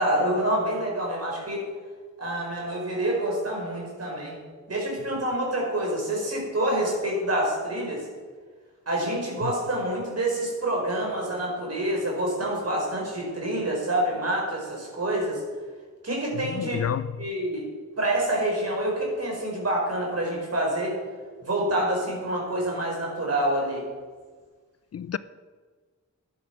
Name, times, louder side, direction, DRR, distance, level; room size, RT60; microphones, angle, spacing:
voice 1, 0.0-1.7 2.2-4.4 4.7-8.1 8.9-15.4 16.0-16.9 17.2-17.7 18.0-20.9 21.4-23.9, right 1 dB, 55° right, 5.0 m, -27 dB
voice 2, 16.5-17.1 24.9-25.2, left 8 dB, 55° left, 0.4 m, -28 dB
11.5 x 11.0 x 6.0 m
wide cardioid pair, 85°, 30 cm